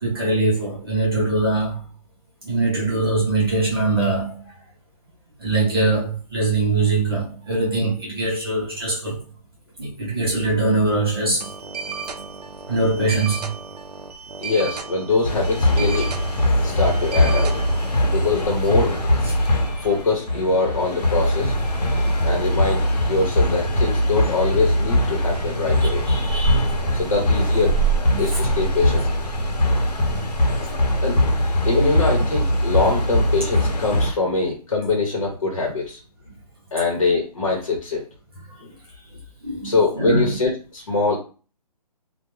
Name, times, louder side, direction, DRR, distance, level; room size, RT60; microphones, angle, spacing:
voice 1, 0.0-1.8 2.4-4.5 5.4-9.2 9.8-11.5 12.1-12.2 12.7-13.5 18.0-18.1 19.3-19.9 25.8-26.7 28.1-28.2 39.4-40.3, right 2 dB, 35° right, 0.9 m, -22 dB
sound 1, 11.4-17.9, right 5 dB, 70° right, 0.5 m, -34 dB
voice 2, 14.4-16.1 16.6-17.5 18.1-19.0 19.8-21.6 22.2-26.1 26.9-27.7 28.2-29.1 30.1-30.3 31.0-31.2 31.6-36.0 36.7-38.0 38.6-38.7 39.6-41.2, left 3 dB, 50° left, 0.9 m, -23 dB
sound 2, 15.2-34.1, equal, 75° left, 0.8 m, -21 dB
sound 3, 16.6-28.1, left 1 dB, 10° left, 0.7 m, -41 dB
2.3 x 2.1 x 3.1 m
hypercardioid pair, 180°, 21 cm